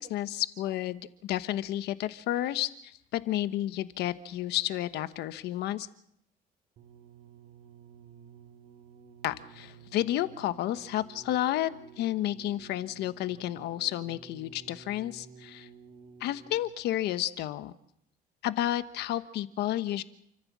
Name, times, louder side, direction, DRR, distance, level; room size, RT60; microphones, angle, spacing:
voice 1, 0.0-5.9 9.2-11.7 12.0-15.7 16.2-17.7 18.4-20.0, left 13 dB, 80° left, 12 dB, 1.1 m, -31 dB
sound 1, 6.8-16.9 17.7-17.8, right 6 dB, 65° right, 2.9 m, -53 dB
29.0 x 14.5 x 7.4 m, 0.73 s
cardioid pair, 110°, 17 cm